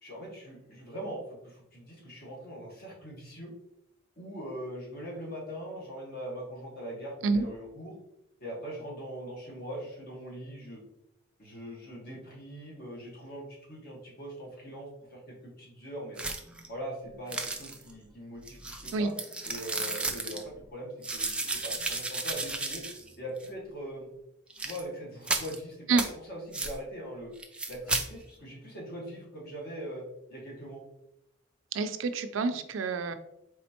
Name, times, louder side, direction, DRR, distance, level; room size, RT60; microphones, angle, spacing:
voice 1, 0.0-3.5 4.2-8.0 8.4-10.8 11.4-16.2 16.7-19.1 19.4-22.8 23.2-24.1 24.6-26.0 26.3-27.3 27.7-30.0 30.3-30.8, equal, 50° left, -2 dB, 1.4 m, -41 dB
sound 1, 16.2-16.7 17.3-17.9 18.5-20.4 21.0-23.1 23.4-23.5 24.5-24.8 25.2-25.6 26.0-26.1 26.5-26.8 27.4-28.1, right 3 dB, 5° right, 0.3 m, -33 dB
voice 2, 31.7-33.1, right 4 dB, 80° right, 10 dB, 0.4 m, -27 dB
4.2 x 3.3 x 2.8 m, 0.83 s
head